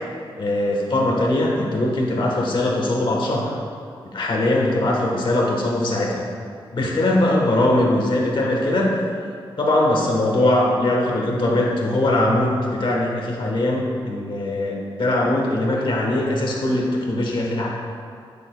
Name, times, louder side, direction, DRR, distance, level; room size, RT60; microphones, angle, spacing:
voice 1, 0.4-3.5 4.0-6.2 6.7-9.0 9.6-17.7, left 1 dB, 60° left, -2 dB, 1.2 m, -21 dB
8.9 x 8.2 x 2.3 m, 2.3 s
wide cardioid pair, 155°, 9 cm